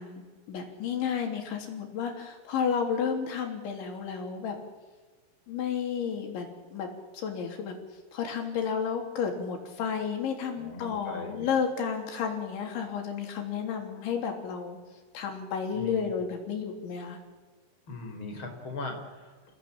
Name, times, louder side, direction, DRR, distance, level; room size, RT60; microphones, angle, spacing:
voice 1, 0.0-4.6 5.5-6.9 7.1-7.7 8.1-14.8 15.1-17.2, left 7 dB, 75° left, 3 dB, 5.7 m, -32 dB
voice 2, 10.6-11.5 15.7-16.1 17.9-19.5, left 2 dB, 25° left, 3 dB, 5.3 m, -39 dB
29.0 x 18.0 x 8.9 m, 1.3 s
omnidirectional pair, 5.3 m